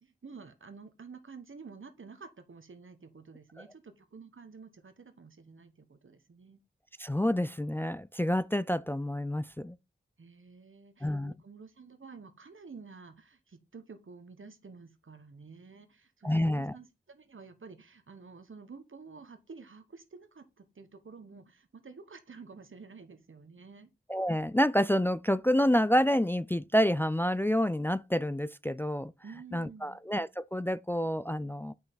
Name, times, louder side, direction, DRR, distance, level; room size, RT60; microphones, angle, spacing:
voice 1, 0.0-6.6 10.2-23.9 29.2-30.0, right 4 dB, 75° right, 1.1 m, -50 dB
voice 2, 7.0-9.8 11.0-11.3 16.2-16.7 24.1-29.1 29.5-31.7, equal, 10° left, 0.3 m, -28 dB
7.8 x 5.7 x 3.9 m
wide cardioid pair, 60°, 21 cm